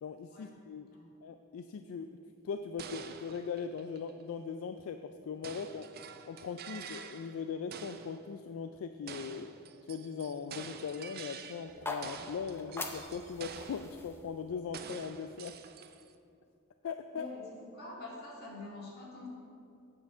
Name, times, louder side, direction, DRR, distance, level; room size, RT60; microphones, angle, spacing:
voice 1, 0.0-0.9 1.2-2.2 2.4-5.9 6.3-9.5 9.9-15.6 16.8-17.3, left 6 dB, 70° left, 8 dB, 0.3 m, -40 dB
sound 1, 2.8-4.2 5.4-7.4 7.7-8.2 9.1-11.8 12.0-14.0 14.7-16.2, right 7 dB, 45° right, 0.4 m, -47 dB
sound 2, 11.6-15.8, left 2 dB, 10° left, 0.6 m, -44 dB
voice 2, 17.1-19.3, left 2 dB, 50° left, -4 dB, 2.2 m, -46 dB
8.9 x 5.7 x 6.1 m, 2.6 s
head